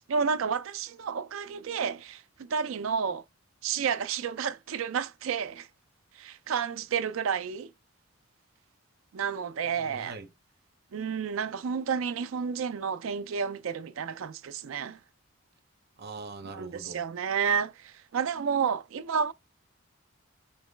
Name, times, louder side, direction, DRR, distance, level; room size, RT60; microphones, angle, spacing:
voice 1, 0.1-3.2 3.6-5.7 6.2-7.7 9.1-10.2 10.9-15.0 16.5-19.3, right 6 dB, 75° right, 0.4 m, -31 dB
voice 2, 9.7-10.3 16.0-17.0, right 3 dB, 50° right, 0.8 m, -42 dB
4.6 x 3.0 x 3.2 m
head